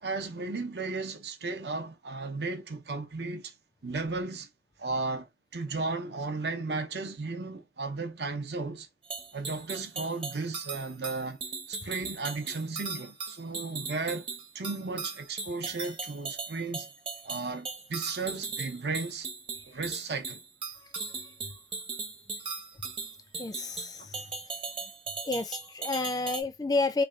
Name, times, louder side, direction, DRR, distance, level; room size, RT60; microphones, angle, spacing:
voice 1, 0.0-3.5 3.8-4.5 4.8-8.9 9.3-11.4 11.7-14.3 14.5-16.9 17.2-19.3 19.7-20.4 24.0-24.2, right 3 dB, 70° right, 0.7 m, -35 dB
sound 1, 9.1-26.4, right 4 dB, 30° right, 0.8 m, -38 dB
voice 2, 23.4-24.2 25.2-27.0, left 3 dB, 20° left, 0.3 m, -30 dB
3.3 x 2.2 x 3.6 m
head